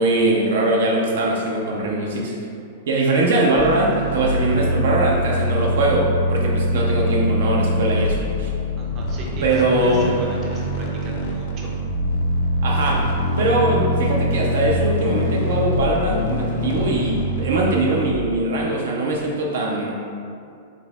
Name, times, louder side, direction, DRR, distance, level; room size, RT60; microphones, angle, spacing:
voice 1, 0.0-2.3 2.9-8.5 9.4-10.1 12.6-13.0 13.4-19.9, right 2 dB, 80° right, -2 dB, 0.5 m, -21 dB
sound 1, 3.6-18.1, equal, 70° left, 0.4 m, -23 dB
voice 2, 8.8-11.7, right 1 dB, 35° right, -3 dB, 0.5 m, -33 dB
3.9 x 2.7 x 2.3 m, 2.4 s
hypercardioid pair, 135°, 0 cm